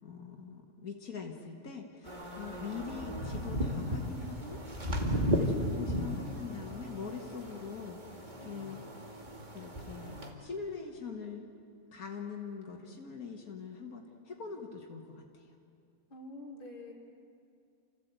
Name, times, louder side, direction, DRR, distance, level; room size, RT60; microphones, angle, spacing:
voice 1, 0.0-4.6 5.1-8.8 9.5-11.4 11.9-15.5, left 5 dB, 90° left, 2 dB, 2.1 m, -43 dB
sound 1, 2.0-10.3, equal, 35° right, 2.4 m, -35 dB
voice 2, 16.1-16.9, left 2 dB, 35° left, -2 dB, 3.5 m, -46 dB
28.5 x 15.0 x 8.2 m, 2.4 s
omnidirectional pair, 1.5 m